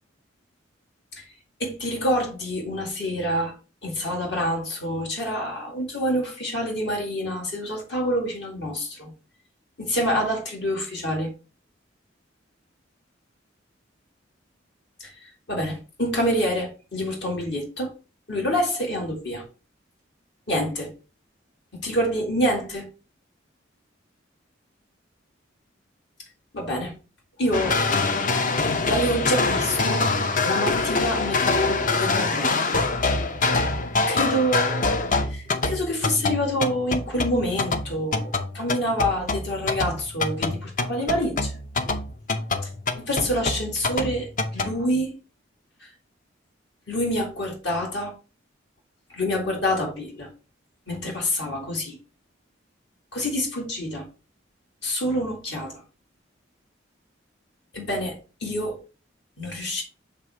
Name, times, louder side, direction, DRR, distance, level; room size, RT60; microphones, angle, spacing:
voice 1, 1.6-3.5 3.8-9.1 9.8-11.3 15.5-17.9 18.3-19.4 20.5-20.9 21.7-22.9 26.5-27.0 27.4-27.8 28.8-30.1 30.4-32.8 34.1-34.9 35.3-41.5 42.9-44.3 44.5-45.1 46.9-48.1 49.1-50.3 50.9-52.0 53.1-54.1 54.8-55.7 57.7-58.8 59.4-59.8, equal, 65° left, 2.1 m, -27 dB
sound 1, 27.5-44.7, left 3 dB, 45° left, 0.6 m, -25 dB
6.7 x 3.3 x 4.7 m
head